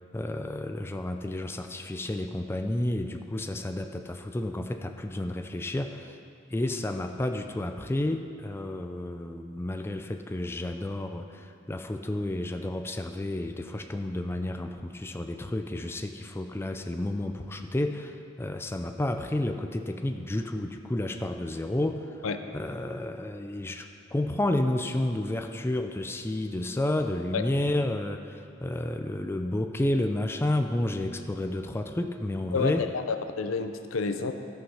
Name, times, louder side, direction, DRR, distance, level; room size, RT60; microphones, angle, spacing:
voice 1, 0.1-6.2 6.5-22.2 22.5-32.9, left 1 dB, 10° left, 6 dB, 0.4 m, -31 dB
voice 2, 32.5-34.3, left 4 dB, 80° left, 8 dB, 0.6 m, -29 dB
13.0 x 5.7 x 5.5 m, 2.7 s
head